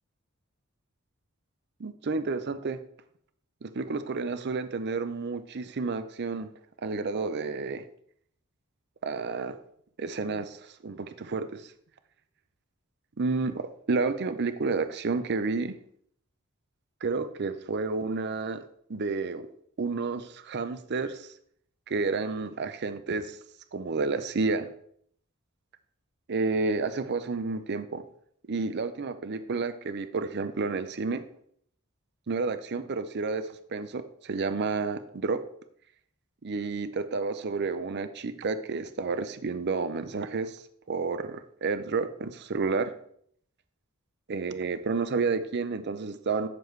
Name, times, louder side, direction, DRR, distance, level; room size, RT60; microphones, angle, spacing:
voice 1, 1.8-2.8 3.6-6.5 6.8-7.8 9.0-9.6 10.0-11.7 13.2-15.7 17.0-18.6 18.9-19.5 19.8-21.3 21.9-23.4 23.7-24.7 26.3-28.0 28.5-31.2 32.3-33.4 33.7-35.4 36.4-40.6 40.9-42.9 44.3-46.5, right 4 dB, 50° right, 11 dB, 0.6 m, -30 dB
9.3 x 6.9 x 3.2 m, 0.66 s
head